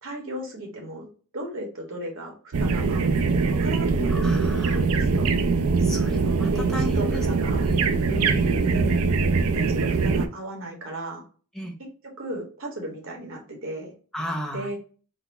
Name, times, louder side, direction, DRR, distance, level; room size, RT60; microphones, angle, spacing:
voice 1, 0.0-1.1 1.3-3.1 3.4-4.1 4.6-5.3 6.5-7.7 8.7-8.9 9.5-11.2 12.2-13.9 14.5-14.8, right 1 dB, 65° right, 1 dB, 1.5 m, -35 dB
sound 1, 2.5-10.3, right 4 dB, 90° right, 0.5 m, -22 dB
voice 2, 4.1-4.8 5.8-9.0 11.5-11.7 14.1-14.7, equal, ahead, 0 dB, 0.6 m, -34 dB
4.1 x 2.3 x 4.0 m, 0.40 s
head